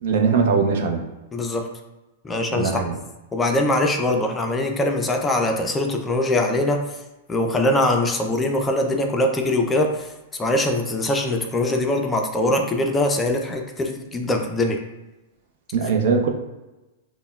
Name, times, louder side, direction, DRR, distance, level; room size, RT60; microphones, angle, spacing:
voice 1, 0.0-1.0 2.5-3.0 15.7-16.3, right 5 dB, 65° right, 3 dB, 0.6 m, -20 dB
voice 2, 1.3-1.7 2.2-2.8 3.3-7.0 7.3-14.8, left 1 dB, 15° left, 3 dB, 0.4 m, -22 dB
5.3 x 2.1 x 2.3 m, 1.0 s
hypercardioid pair, 115°, 0 cm